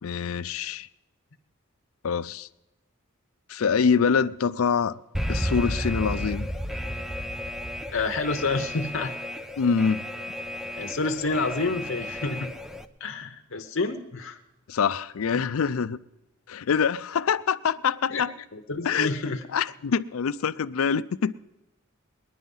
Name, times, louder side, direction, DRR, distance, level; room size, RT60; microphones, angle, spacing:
voice 1, 0.0-0.9 2.0-2.5 3.5-5.0 5.3-6.5 9.6-10.0 14.7-16.0 16.5-18.3 18.8-19.2 19.5-21.3, left 6 dB, 90° left, 0.5 m, -25 dB
Alarm, 5.1-12.8, equal, ahead, 0.4 m, -33 dB
voice 2, 7.9-9.1 10.8-12.5 13.0-14.4 18.1-18.2 18.5-19.4, left 3 dB, 65° left, 0.9 m, -28 dB
20.0 x 10.5 x 5.5 m
head